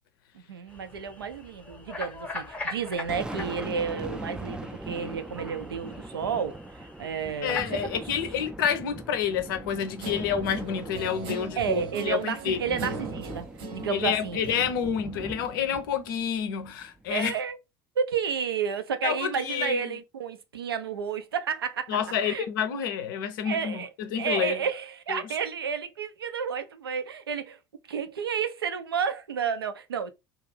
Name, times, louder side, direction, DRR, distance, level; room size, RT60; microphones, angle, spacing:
voice 1, 0.3-8.1 11.6-13.5 13.7-14.4 17.1-17.6 18.0-22.5 23.4-23.9 24.2-27.6 27.9-30.1, right 6 dB, 75° right, 0.4 m, -31 dB
sound 1, 0.7-8.5, left 3 dB, 10° left, 0.7 m, -42 dB
Thunder, 2.7-17.3, right 2 dB, 5° right, 0.3 m, -41 dB
voice 2, 7.4-12.6 13.9-17.3 19.0-19.8 21.9-23.8 24.1-24.6 25.1-25.2, left 8 dB, 60° left, 0.5 m, -29 dB
Guitar, 10.0-15.8, right 3 dB, 45° right, 0.7 m, -40 dB
2.4 x 2.3 x 3.2 m
figure-of-eight pair, 70°, 12 cm